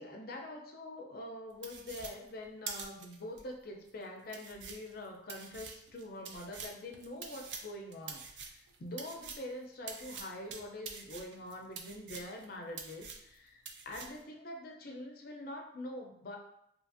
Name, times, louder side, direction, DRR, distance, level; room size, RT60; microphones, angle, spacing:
voice 1, 0.0-13.6 13.9-16.4, left 1 dB, 55° left, 1 dB, 0.5 m, -45 dB
sound 1, 1.6-3.4 3.9-4.0 4.3-9.5 9.9-12.5 12.7-13.4 13.7-14.2, right 5 dB, 80° right, 0.4 m, -46 dB
2.8 x 2.4 x 2.5 m, 0.76 s
head